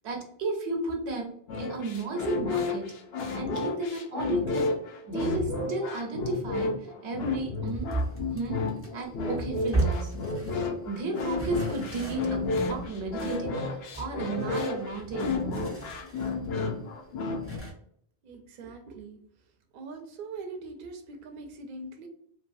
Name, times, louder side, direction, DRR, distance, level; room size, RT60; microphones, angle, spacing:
voice 1, 0.0-1.3 1.6-2.9 3.3-4.7 5.1-8.1 8.3-8.6 8.9-10.1 10.9-15.6, right 2 dB, 85° right, 1 dB, 1.1 m, -33 dB
sound 1, 1.5-17.6, left 3 dB, 70° left, 0.8 m, -32 dB
sound 2, 7.7-10.9 11.3-16.5 16.8-16.9 17.4-17.7, right 2 dB, 15° left, 0.6 m, -35 dB
voice 2, 18.2-19.2 19.7-22.1, right 3 dB, 60° right, 3 dB, 0.6 m, -42 dB
3.1 x 2.2 x 2.5 m, 0.67 s
omnidirectional pair, 1.1 m